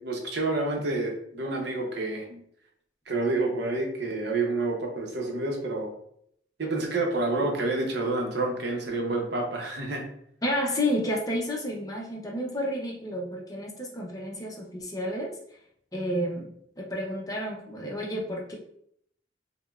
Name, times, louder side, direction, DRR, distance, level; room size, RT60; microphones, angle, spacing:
voice 1, 0.0-2.4 3.1-5.9 6.6-10.1, right 2 dB, 60° right, 1 dB, 0.7 m, -28 dB
voice 2, 10.4-15.3 15.9-16.5 16.8-18.6, equal, 20° left, 0 dB, 0.6 m, -30 dB
5.0 x 2.1 x 2.3 m, 0.69 s
head